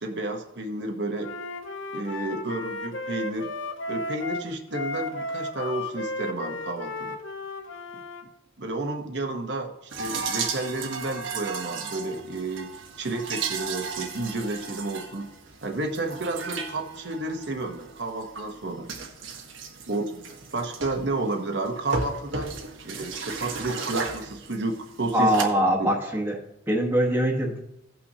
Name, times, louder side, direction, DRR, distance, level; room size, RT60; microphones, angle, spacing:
voice 1, 0.0-1.3 1.9-3.5 3.9-7.2 8.6-12.7 13.0-15.3 15.6-18.9 19.9-20.2 20.5-22.5 22.8-25.3 25.8-25.9, right 2 dB, 60° right, 3 dB, 0.9 m, -31 dB
Wind instrument woodwind instrument, 1.2-8.2, left 2 dB, 85° left, 0.9 m, -34 dB
sound 1, 9.9-25.4, right 4 dB, 80° right, 1.2 m, -35 dB
voice 2, 25.1-26.4 26.7-27.6, equal, 10° right, -2 dB, 1.2 m, -23 dB
17.0 x 5.8 x 2.8 m, 0.83 s
head